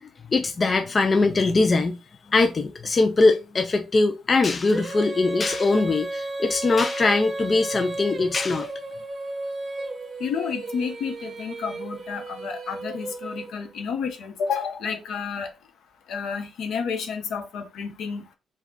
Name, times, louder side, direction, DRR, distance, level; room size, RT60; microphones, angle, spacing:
voice 1, 0.0-2.0 2.3-8.7, left 3 dB, 30° left, 0.4 m, -21 dB
Female singing, 4.7-13.8, right 2 dB, 25° right, 0.8 m, -34 dB
voice 2, 10.2-15.5 16.1-18.3, left 6 dB, 75° left, 1.0 m, -30 dB
4.8 x 2.3 x 3.9 m
cardioid pair, 135°, 0 cm